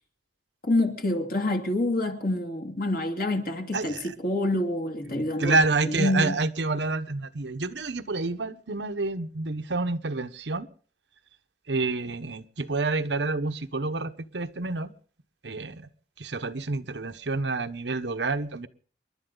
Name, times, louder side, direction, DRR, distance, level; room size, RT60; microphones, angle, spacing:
voice 1, 0.6-6.4, left 1 dB, 55° left, 2.5 m, -27 dB
voice 2, 3.7-4.1 5.4-10.7 11.7-14.9 15.4-15.9 16.2-18.7, right 3 dB, 90° right, 1.1 m, -28 dB
28.5 x 11.5 x 3.9 m
head